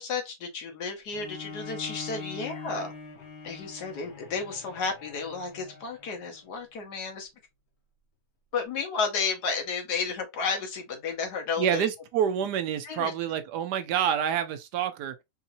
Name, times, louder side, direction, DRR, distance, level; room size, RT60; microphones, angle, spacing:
voice 1, 0.0-2.9 3.4-7.3 8.5-11.9 12.8-13.1, left 5 dB, 80° left, 1.7 m, -32 dB
Bowed string instrument, 1.1-6.4, left 5 dB, 65° left, 1.5 m, -43 dB
voice 2, 11.6-15.1, right 9 dB, 85° right, 1.3 m, -27 dB
4.6 x 2.8 x 2.6 m
omnidirectional pair, 1.7 m